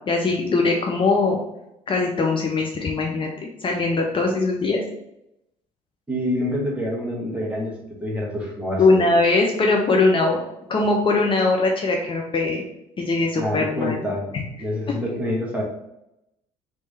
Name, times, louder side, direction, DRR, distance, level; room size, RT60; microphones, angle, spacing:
voice 1, 0.1-1.4 1.9-4.8 8.8-10.4 10.7-12.6 13.0-14.0, left 3 dB, 30° left, 1 dB, 0.7 m, -21 dB
voice 2, 6.1-7.7 8.0-9.1 13.3-14.3 14.6-15.6, left 1 dB, 5° right, -3 dB, 1.6 m, -26 dB
3.6 x 3.2 x 4.0 m, 0.85 s
figure-of-eight pair, 55°, 17 cm